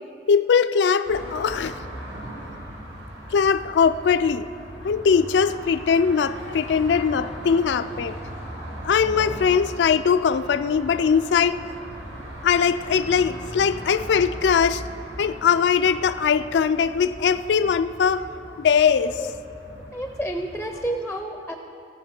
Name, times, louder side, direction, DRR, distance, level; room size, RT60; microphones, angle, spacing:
voice 1, 0.3-1.7 3.3-4.5 4.8-8.1 8.8-11.6 12.4-14.8 15.2-18.3 18.6-19.1, left 6 dB, 70° left, 13 dB, 0.3 m, -21 dB
sound 1, 1.1-20.9, equal, 80° right, 2.0 m, -38 dB
voice 2, 13.2-13.5 19.0-19.3 19.9-21.6, right 1 dB, 5° left, 4 dB, 0.5 m, -31 dB
17.0 x 6.9 x 4.3 m, 2.7 s
head